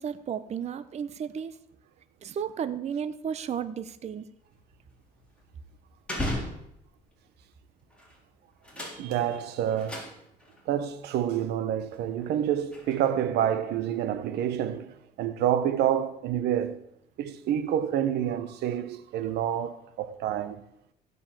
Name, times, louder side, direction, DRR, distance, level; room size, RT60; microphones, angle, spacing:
voice 1, 0.0-1.5 2.2-4.2, right 8 dB, 40° right, 0.7 m, -33 dB
sound 1, 4.4-7.1 7.9-8.2 8.5-10.6 11.1-11.2 11.8-13.3, left 1 dB, 5° left, 3.7 m, -38 dB
voice 2, 8.9-10.1 10.7-16.8 17.2-20.6, right 10 dB, 75° right, 0.9 m, -28 dB
15.5 x 5.4 x 7.4 m
cardioid pair, 110°, 17 cm